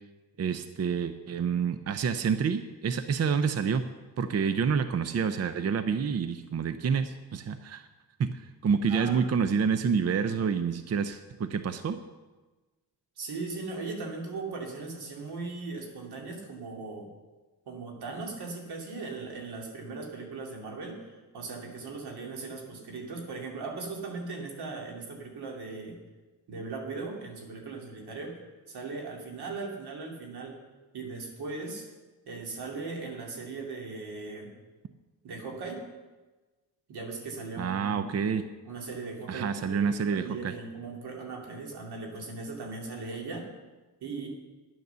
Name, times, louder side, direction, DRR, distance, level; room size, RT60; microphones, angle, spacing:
voice 1, 0.4-3.8 4.2-7.9 8.2-12.0 37.6-38.4 39.3-40.2, right 6 dB, 40° right, 10 dB, 0.6 m, -28 dB
voice 2, 8.9-9.3 13.2-17.1 17.7-26.0 26.5-28.4 28.7-30.6 30.9-31.9 32.3-34.5 35.2-35.9 36.9-38.2 38.6-43.5 44.0-44.3, right 3 dB, 85° right, 0 dB, 2.7 m, -38 dB
10.5 x 9.5 x 6.8 m, 1.2 s
cardioid pair, 115°, 38 cm